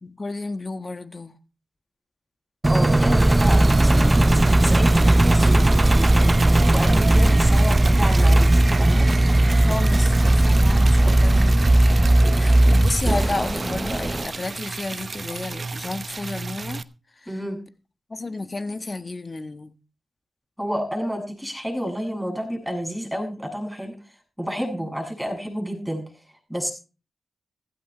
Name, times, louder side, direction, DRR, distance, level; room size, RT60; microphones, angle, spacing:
voice 1, 0.0-1.4 9.7-16.8 17.2-17.3 18.1-19.7, left 3 dB, 40° left, 1.5 m, -32 dB
voice 2, 2.6-9.1 17.3-17.6 20.6-24.0 24.4-26.0 26.5-26.7, equal, ahead, 7.5 m, -30 dB
Engine, 2.6-14.3, right 1 dB, 25° right, 0.7 m, -17 dB
Liquid, 3.2-16.8, right 4 dB, 50° right, 0.9 m, -34 dB
15.5 x 15.0 x 3.3 m
supercardioid pair, 45°, 0 cm